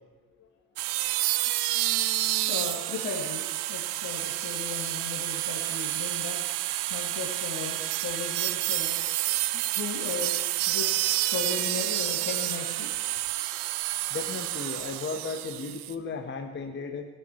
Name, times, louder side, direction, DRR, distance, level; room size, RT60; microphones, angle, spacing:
sound 1, 0.8-15.9, right 16 dB, 60° right, 0.9 m, -29 dB
voice 1, 2.5-6.4 6.9-9.0 9.7-10.3 10.7-12.9, left 6 dB, 55° left, -5 dB, 3.1 m, -36 dB
voice 2, 14.1-17.1, left 4 dB, 25° left, 4 dB, 1.3 m, -35 dB
19.0 x 16.5 x 3.2 m, 1.4 s
hypercardioid pair, 70°, 47 cm